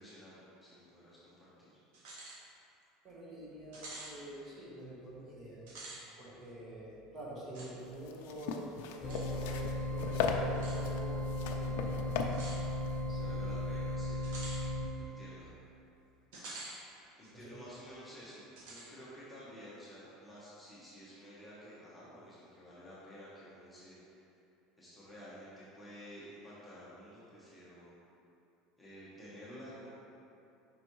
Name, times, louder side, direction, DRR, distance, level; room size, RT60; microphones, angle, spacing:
voice 1, 0.0-1.7 13.2-14.3 15.0-15.5 17.2-24.2 24.8-27.9 28.8-30.0, equal, 5° left, -10 dB, 1.0 m, -52 dB
sound 1, 1.9-2.4 2.8-2.9 3.7-4.1 5.6-6.0 7.5-7.7 9.1-9.2 10.5-10.8 12.3-12.6 14.2-14.6 16.3-16.8 17.2-17.3 18.6-18.9, right 2 dB, 75° right, 1.3 m, -47 dB
voice 2, 3.0-5.6 6.2-12.2 13.0-13.6 17.3-17.5, right 1 dB, 20° right, -6 dB, 1.1 m, -47 dB
sound 2, 7.9-13.9, left 5 dB, 75° left, 0.5 m, -38 dB
sound 3, 9.0-14.9, left 2 dB, 30° left, 0.8 m, -36 dB
5.4 x 4.2 x 4.6 m, 2.7 s
cardioid pair, 175°, 0 cm